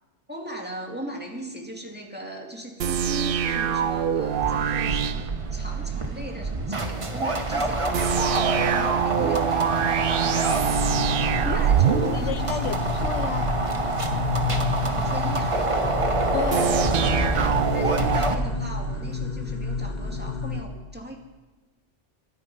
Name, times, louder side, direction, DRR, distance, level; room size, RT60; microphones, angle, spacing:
voice 1, 0.3-10.5 11.4-12.6 14.9-15.9 17.4-21.2, right 1 dB, 10° right, 2.2 m, -38 dB
sound 1, 2.8-6.1 7.9-13.1 16.5-19.1, right 8 dB, 60° right, 0.7 m, -25 dB
sound 2, 4.4-18.3, right 2 dB, 30° right, 1.1 m, -27 dB
sound 3, 10.8-20.6, left 4 dB, 40° left, 1.3 m, -30 dB
voice 2, 12.0-13.5 16.3-16.8, left 10 dB, 80° left, 1.0 m, -32 dB
22.5 x 9.0 x 5.4 m
omnidirectional pair, 1.2 m